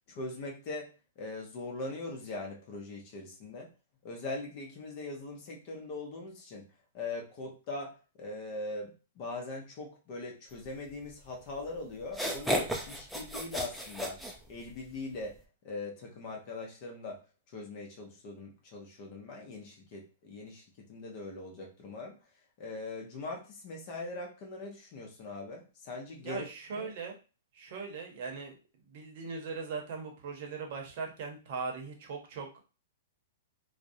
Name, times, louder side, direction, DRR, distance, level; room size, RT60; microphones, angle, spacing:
voice 1, 0.1-0.9 1.2-3.7 4.0-6.6 6.9-14.2 14.5-15.4 15.6-17.2 17.5-20.6 20.9-22.2 22.6-26.4 26.7-26.9, left 2 dB, 45° left, 0 dB, 0.6 m, -41 dB
sound 1, 11.5-11.6 12.1-14.9, equal, ahead, 0.4 m, -33 dB
voice 2, 26.2-27.1 27.5-28.5 28.8-32.6, right 5 dB, 55° right, 2 dB, 0.7 m, -39 dB
2.4 x 2.0 x 2.6 m, 0.34 s
hypercardioid pair, 130°, 0 cm